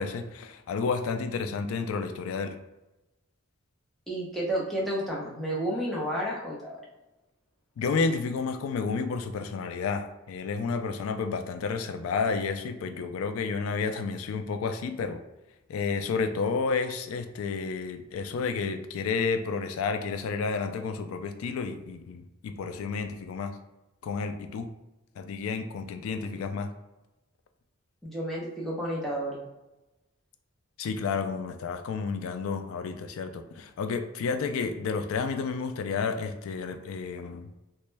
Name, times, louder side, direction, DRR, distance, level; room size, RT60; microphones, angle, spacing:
voice 1, 0.0-2.5 7.8-15.2 15.7-23.5 24.0-24.7 25.2-26.7 30.8-37.5, left 5 dB, 75° left, 8 dB, 0.3 m, -31 dB
voice 2, 4.1-6.8 28.0-29.4, right 1 dB, ahead, -6 dB, 0.7 m, -31 dB
3.0 x 2.2 x 3.2 m, 1.0 s
head